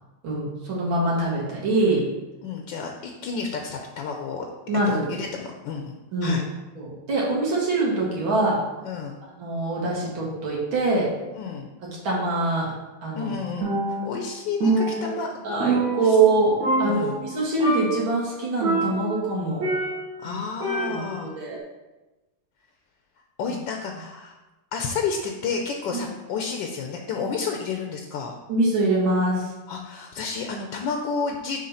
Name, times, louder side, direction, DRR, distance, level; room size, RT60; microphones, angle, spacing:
voice 1, 0.2-2.0 4.7-5.0 6.1-6.3 6.8-8.6 9.2-11.1 12.0-12.7 13.0-13.3 15.4-19.6 20.2-20.3 20.7-21.6 26.0-26.1 28.5-29.5, right 2 dB, 85° right, -5 dB, 2.5 m, -24 dB
voice 2, 2.4-4.5 4.9-5.9 6.2-6.4 8.8-9.2 11.3-11.7 13.2-15.8 16.0-16.2 16.9-17.2 20.2-21.3 23.4-24.3 24.7-28.4 29.7-31.6, left 5 dB, 75° left, 2 dB, 1.3 m, -31 dB
Percussion, 13.6-14.3 14.6-16.4 16.6-17.3 17.6-18.1 18.6-20.2 20.6-21.3, right 2 dB, 50° right, 1.8 m, -26 dB
6.4 x 3.6 x 5.6 m, 1.1 s
omnidirectional pair, 2.1 m